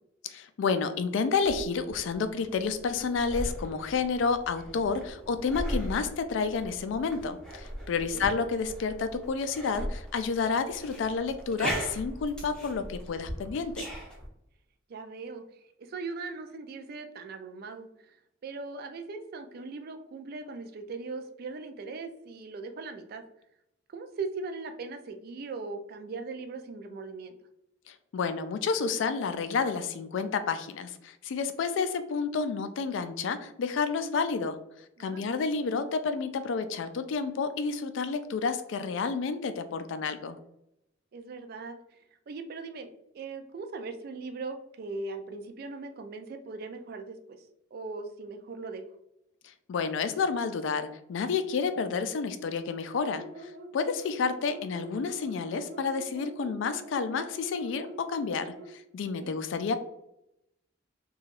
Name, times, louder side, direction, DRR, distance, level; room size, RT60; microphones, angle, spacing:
voice 1, 0.2-13.9 27.9-34.6 35.0-40.4 49.7-59.8, left 5 dB, 65° left, 10 dB, 0.3 m, -30 dB
sound 1, 1.4-14.3, equal, 5° left, 0.5 m, -39 dB
voice 2, 14.9-23.2 23.9-27.3 35.0-35.5 41.1-48.8 59.2-59.4, right 3 dB, 50° right, 6 dB, 0.3 m, -40 dB
sound 2, 52.9-58.8, right 1 dB, 90° right, 0.7 m, -45 dB
2.9 x 2.3 x 2.9 m, 0.82 s
head